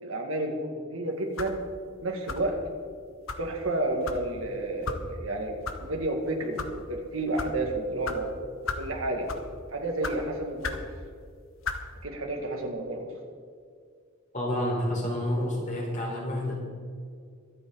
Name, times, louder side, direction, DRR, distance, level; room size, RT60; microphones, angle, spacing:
voice 1, 0.0-1.6 2.0-2.6 3.4-8.4 8.8-9.3 9.7-10.9 12.0-13.1, right 2 dB, 85° right, 2 dB, 2.2 m, -31 dB
sound 1, 1.4-1.6 2.3-2.6 3.3-3.4 4.0-4.2 4.8-5.0 5.6-5.8 6.4-6.7 7.4-7.5 8.0-8.2 8.7-8.9 9.3-9.5 10.0-10.2 10.6-10.9 11.6-11.8, left 4 dB, 75° left, 1.1 m, -34 dB
voice 2, 14.3-16.6, left 1 dB, 40° left, -3 dB, 4.1 m, -29 dB
23.5 x 8.7 x 4.0 m, 2.1 s
head